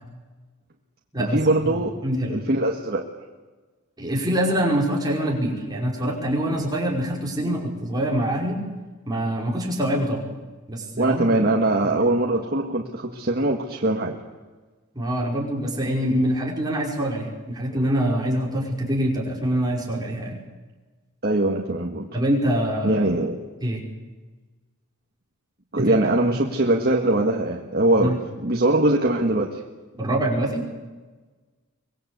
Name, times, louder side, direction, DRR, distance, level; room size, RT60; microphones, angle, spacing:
voice 1, 1.2-1.9 2.3-3.0 11.0-14.2 21.2-22.1 22.8-23.4 25.7-29.6, right 2 dB, 45° right, 0 dB, 1.8 m, -22 dB
voice 2, 2.0-2.4 4.0-8.6 9.1-10.3 10.7-11.3 11.8-12.1 15.0-20.4 22.1-23.0 23.6-23.8 25.8-26.0 26.3-26.4 28.0-28.2 29.9-30.6, equal, 20° right, -1 dB, 5.3 m, -25 dB
24.5 x 20.5 x 8.3 m, 1.3 s
head